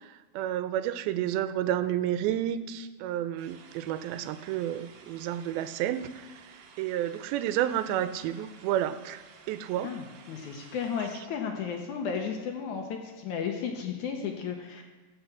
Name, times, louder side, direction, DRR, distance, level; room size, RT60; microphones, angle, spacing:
voice 1, 0.0-6.3 6.8-9.2 9.5-9.9, right 11 dB, 85° right, 12 dB, 2.5 m, -30 dB
sound 1, 3.4-11.2, right 5 dB, 65° right, 1.9 m, -54 dB
voice 2, 9.8-14.8, left 6 dB, 70° left, 3 dB, 2.0 m, -34 dB
16.0 x 5.9 x 7.1 m, 1.3 s
omnidirectional pair, 4.2 m